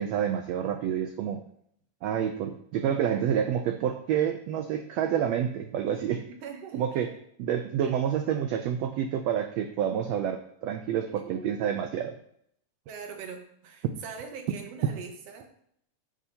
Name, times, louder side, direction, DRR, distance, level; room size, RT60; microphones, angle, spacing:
voice 1, 0.0-1.4 2.0-6.2 6.7-7.1 7.4-12.1, right 9 dB, 85° right, 6 dB, 1.4 m, -28 dB
voice 2, 6.3-7.2 7.8-7.9 11.2-11.8 12.9-15.5, right 6 dB, 65° right, 4 dB, 1.7 m, -42 dB
9.8 x 7.2 x 2.9 m, 0.68 s
omnidirectional pair, 3.6 m